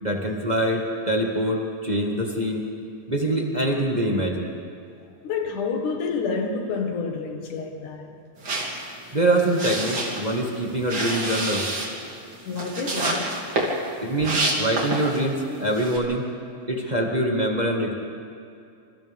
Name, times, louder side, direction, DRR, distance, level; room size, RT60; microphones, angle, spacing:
voice 1, 0.0-2.6 3.1-4.5 9.1-11.7 14.0-16.3 16.7-17.9, right 1 dB, 20° right, 1.2 m, -24 dB
voice 2, 5.2-8.2 12.5-13.5, left 4 dB, 75° left, 3.2 m, -29 dB
sound 1, 8.4-15.3 15.7-16.0, right 2 dB, 40° right, 3.4 m, -28 dB
28.5 x 27.0 x 3.6 m
omnidirectional pair, 3.7 m